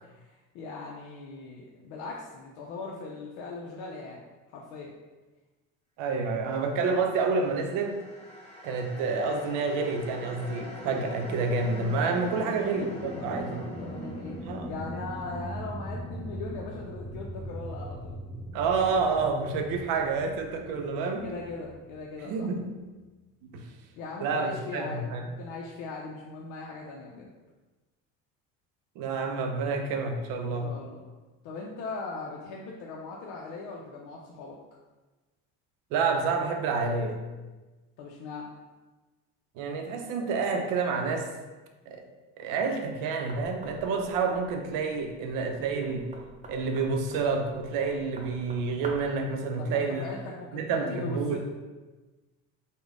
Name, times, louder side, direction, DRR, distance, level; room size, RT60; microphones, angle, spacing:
voice 1, 0.0-4.2 4.5-4.9 12.3-14.4 14.7-18.2 21.2-22.5 24.0-27.3 30.6-31.0 31.4-34.6 38.0-38.5 49.6-51.4, left 3 dB, 75° left, -2 dB, 0.5 m, -40 dB
voice 2, 6.0-8.0 8.6-13.6 14.5-14.7 18.5-21.3 22.2-22.7 23.5-23.7 24.2-25.2 29.0-30.7 35.9-37.2 39.6-41.3 41.9-42.0 42.4-46.1 46.5-50.1 50.5-51.4, right 4 dB, 75° right, 4 dB, 0.6 m, -29 dB
sound 1, 7.3-22.5, equal, 20° left, 0.9 m, -40 dB
Knock, 43.3-49.2, right 2 dB, 20° right, 0.6 m, -47 dB
3.4 x 2.1 x 3.6 m, 1.2 s
supercardioid pair, 95°, 33 cm